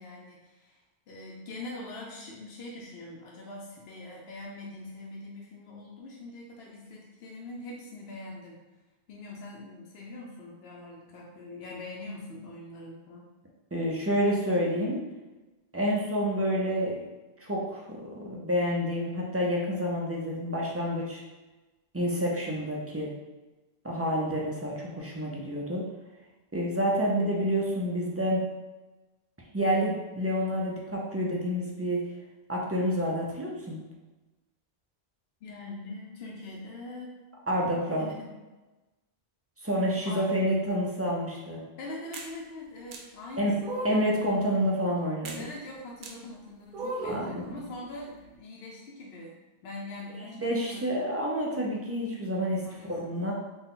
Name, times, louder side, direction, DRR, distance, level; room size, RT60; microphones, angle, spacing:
voice 1, 0.0-8.6 9.1-13.3 35.4-37.2 37.9-38.3 40.1-40.3 41.8-43.7 45.4-51.0 52.6-53.3, left 2 dB, 70° left, -3 dB, 0.8 m, -43 dB
voice 2, 13.7-15.0 15.7-17.0 17.4-21.2 21.9-23.1 23.8-25.9 26.5-28.4 29.5-32.0 32.5-33.8 37.5-38.1 39.6-41.6 43.4-43.5 43.8-45.4 47.0-47.5 50.2-52.6 52.9-53.3, equal, 25° right, -3 dB, 0.3 m, -28 dB
sound 1, 42.1-42.3 42.9-43.0 43.6-44.2 45.3-45.4 46.0-46.1 46.7-47.3, right 2 dB, 60° right, 0.6 m, -35 dB
4.0 x 2.2 x 3.7 m, 1.1 s
omnidirectional pair, 1.1 m